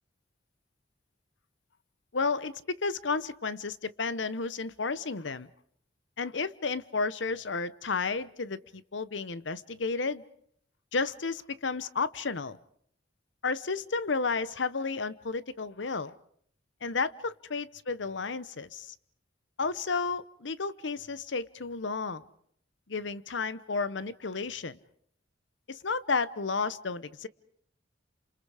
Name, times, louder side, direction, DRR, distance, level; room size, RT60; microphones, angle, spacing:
voice 1, 2.1-5.5 6.2-10.2 10.9-12.6 13.4-16.1 16.8-18.9 19.6-22.2 22.9-24.8 25.7-27.3, left 4 dB, 75° left, 16 dB, 0.9 m, -32 dB
29.5 x 27.5 x 4.9 m, 0.65 s
head